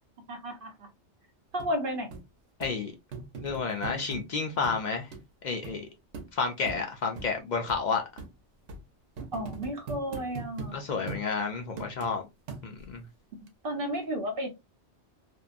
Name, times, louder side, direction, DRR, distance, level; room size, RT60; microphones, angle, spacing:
voice 1, 0.3-0.9 1.5-2.2 9.3-10.8 13.6-14.5, equal, 55° right, 0.9 m, -33 dB
sound 1, 1.6-1.7 2.1-2.2 2.6-2.7 3.1-4.2 4.6-4.8 5.1-5.2 5.6-5.8 6.1-6.3 6.7-6.8 7.2-7.3 7.7-7.8 8.2-8.3 8.7-8.8 9.2-10.7 11.1-11.3 11.8-12.1 12.5-12.9 13.5-13.6, right 4 dB, 85° right, 1.0 m, -40 dB
voice 2, 2.6-2.9 3.4-5.1 5.4-5.9 6.3-8.0 10.7-12.2 12.6-13.0, left 5 dB, 55° left, 0.5 m, -30 dB
2.6 x 2.2 x 2.4 m
omnidirectional pair, 1.2 m